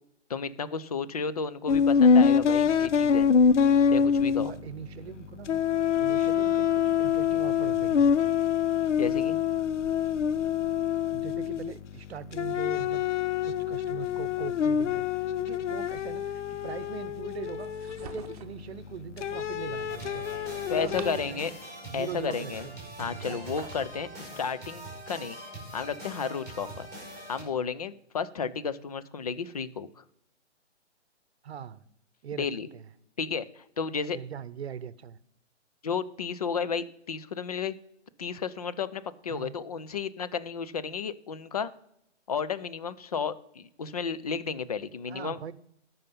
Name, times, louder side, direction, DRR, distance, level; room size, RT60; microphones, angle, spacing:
voice 1, 0.3-3.3 3.9-4.5 9.0-9.4 20.7-21.5 21.9-22.7 23.0-25.4 25.7-26.9 27.3-30.0 32.4-32.7 33.2-34.2 35.8-37.8 38.2-41.7 42.3-45.4, left 6 dB, 35° left, 15 dB, 0.4 m, -32 dB
sound 1, 1.7-5.2 5.4-11.9 12.3-18.6 19.2-21.1, left 7 dB, 80° left, 0.6 m, -25 dB
voice 2, 4.4-5.6 6.0-8.3 8.8-8.9 11.0-13.0 13.4-15.0 15.4-21.6 21.9-22.8 23.1-23.4 24.3-24.4 31.4-31.8 32.2-32.9 34.1-35.2 39.3-39.5 45.1-45.5, right 8 dB, 60° right, 17 dB, 0.8 m, -41 dB
sound 2, 17.6-18.6 20.6-21.7 23.0-23.9, right 7 dB, 30° right, 0.9 m, -47 dB
sound 3, 19.9-27.4, right 1 dB, 5° left, 3.8 m, -43 dB
13.5 x 5.6 x 5.5 m, 0.75 s
hypercardioid pair, 155°, 36 cm